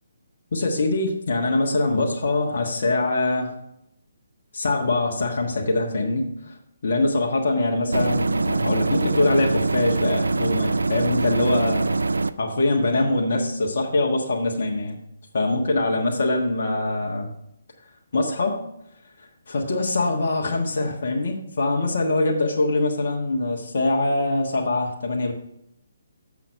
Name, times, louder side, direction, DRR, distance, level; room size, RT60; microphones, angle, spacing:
voice 1, 0.5-3.5 4.5-6.6 6.8-12.0 12.4-15.0 15.3-17.3 18.1-18.6 19.2-25.3, left 2 dB, 60° left, 0 dB, 1.4 m, -23 dB
sound 1, 7.9-12.3, right 3 dB, 85° right, 0.4 m, -23 dB
7.3 x 6.0 x 5.3 m, 0.78 s
figure-of-eight pair, 145°, 0 cm